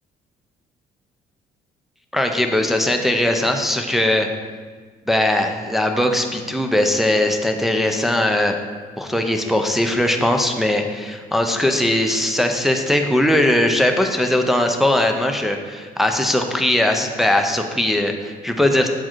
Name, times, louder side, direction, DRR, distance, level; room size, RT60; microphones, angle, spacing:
voice 1, 2.1-4.3 5.1-8.6 9.0-18.9, left 1 dB, ahead, 3 dB, 0.4 m, -19 dB
7.2 x 4.5 x 3.0 m, 1.5 s
cardioid pair, 110°, 17 cm